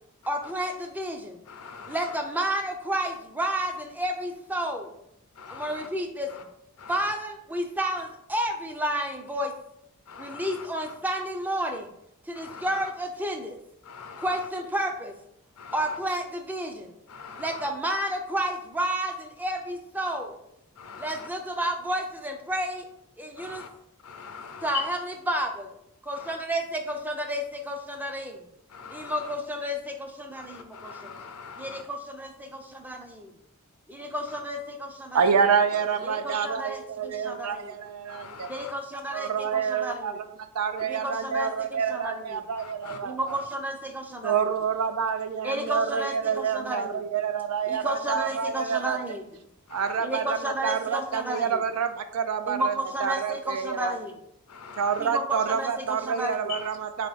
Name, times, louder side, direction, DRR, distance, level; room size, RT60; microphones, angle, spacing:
voice 1, 0.3-1.4 1.9-5.0 5.5-6.3 6.9-9.5 10.2-11.9 12.2-13.6 14.2-15.1 15.7-16.9 17.4-20.4 21.0-22.9 23.2-23.6 24.6-25.8 26.1-28.5 28.9-30.9 31.6-33.3 33.9-35.2 36.0-37.7 38.5-40.2 40.8-42.4 43.0-44.5 45.4-47.0 47.7-49.2 50.0-51.6 52.5-54.1 55.0-56.5, right 1 dB, 10° right, 4 dB, 0.4 m, -31 dB
voice 2, 1.5-2.0 5.4-5.8 6.8-6.9 10.1-10.5 12.4-12.7 13.9-14.2 15.6-15.7 17.1-17.4 20.8-21.3 23.4-23.7 24.0-24.9 28.7-29.1 30.8-31.8 38.1-38.7 42.6-43.0 49.7-49.9 54.5-54.9 56.5-56.6, left 6 dB, 85° left, 6 dB, 0.6 m, -41 dB
voice 3, 35.1-38.5 39.1-40.1 40.5-43.2 44.2-49.0 49.7-52.7 53.0-54.0 54.8-57.1, right 6 dB, 85° right, 9 dB, 0.5 m, -27 dB
3.8 x 3.5 x 4.0 m, 0.78 s
head